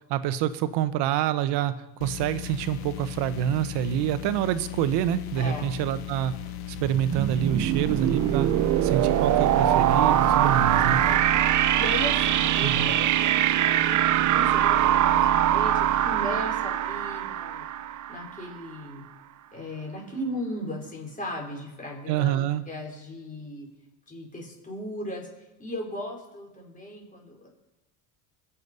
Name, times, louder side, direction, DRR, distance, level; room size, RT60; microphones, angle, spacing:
voice 1, 0.1-1.7 2.0-6.3 6.7-8.5 8.8-11.0 12.6-12.9 22.1-22.6, right 11 dB, 70° right, 13 dB, 1.1 m, -26 dB
sound 1, 2.0-11.2, left 12 dB, 60° left, 1.3 m, -37 dB
voice 2, 5.4-5.7 11.1-11.2 11.5-17.7 18.1-19.0 19.5-23.7 24.1-27.5, left 1 dB, 20° left, -1 dB, 5.1 m, -37 dB
sound 2, 6.8-18.5, right 11 dB, 45° right, 0.8 m, -23 dB
22.0 x 7.3 x 5.4 m, 1.0 s
cardioid pair, 125°, 43 cm